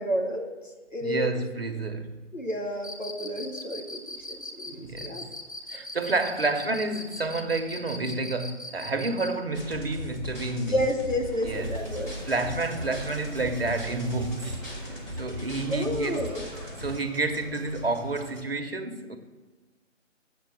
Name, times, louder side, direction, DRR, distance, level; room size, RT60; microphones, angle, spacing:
voice 1, 0.0-1.4 2.3-5.2 10.6-12.1 13.3-13.4 15.7-16.4, equal, 85° left, 2.0 m, -31 dB
voice 2, 1.0-2.2 4.7-5.3 5.7-10.8 11.4-11.7 12.3-14.7 15.2-16.3 16.7-19.2, right 3 dB, 50° right, 1.0 m, -30 dB
Cricket, 2.8-9.4, left 2 dB, 30° left, 0.7 m, -39 dB
sound 1, 9.5-17.0, equal, 10° left, 1.4 m, -38 dB
sound 2, 11.5-18.4, right 1 dB, 25° right, 1.1 m, -43 dB
7.5 x 7.0 x 7.1 m
figure-of-eight pair, 155°, 37 cm